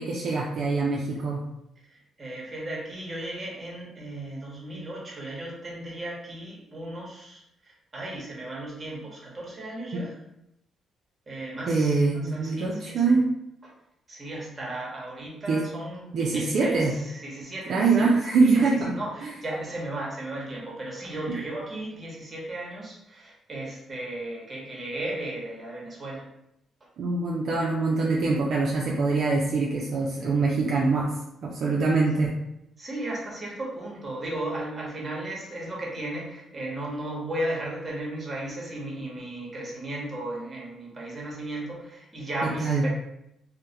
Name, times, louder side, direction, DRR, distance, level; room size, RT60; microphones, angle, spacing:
voice 1, 0.0-1.4 11.7-13.3 15.5-15.6 16.1-16.9 17.7-19.0 19.2-19.3 21.3-21.4 27.0-31.1 31.4-32.3 42.4-42.8, right 3 dB, 65° right, -3 dB, 0.4 m, -24 dB
voice 2, 1.9-10.1 11.3-13.2 13.6-13.7 14.1-18.1 18.4-18.6 18.9-26.2 32.8-42.9, right 1 dB, 30° right, -3 dB, 1.0 m, -35 dB
2.2 x 2.0 x 2.8 m, 0.82 s
supercardioid pair, 65°, 0 cm